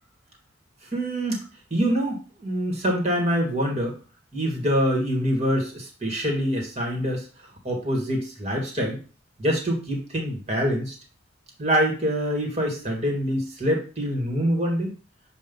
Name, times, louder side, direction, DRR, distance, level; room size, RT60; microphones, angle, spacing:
voice 1, 0.9-1.4 1.7-4.0 4.3-7.3 7.6-9.0 9.4-11.0 11.6-14.9, equal, 30° right, 1 dB, 1.8 m, -25 dB
7.7 x 2.7 x 5.3 m, 0.36 s
head